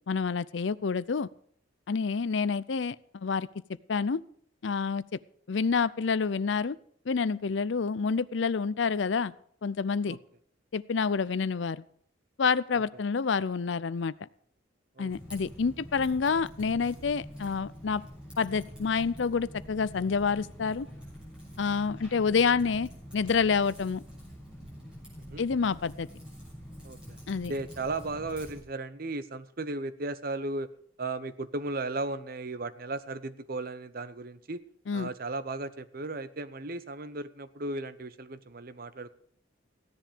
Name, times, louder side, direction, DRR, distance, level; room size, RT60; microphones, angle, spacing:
voice 1, 0.1-1.3 1.9-3.5 3.9-4.2 4.6-5.2 5.5-6.8 7.1-9.3 9.6-10.2 10.7-11.8 12.4-14.1 15.0-18.0 18.4-20.9 21.6-24.0 25.4-26.1 27.3-27.5 34.9-35.1, left 5 dB, 70° left, 18 dB, 0.5 m, -28 dB
voice 2, 15.0-15.4 25.2-25.4 26.8-27.2 27.5-30.7 31.0-34.6 34.9-39.1, right 2 dB, 50° right, 13 dB, 0.9 m, -36 dB
Typing, 15.1-28.6, equal, 5° right, 7.2 m, -46 dB
16.0 x 10.5 x 5.1 m, 0.63 s
head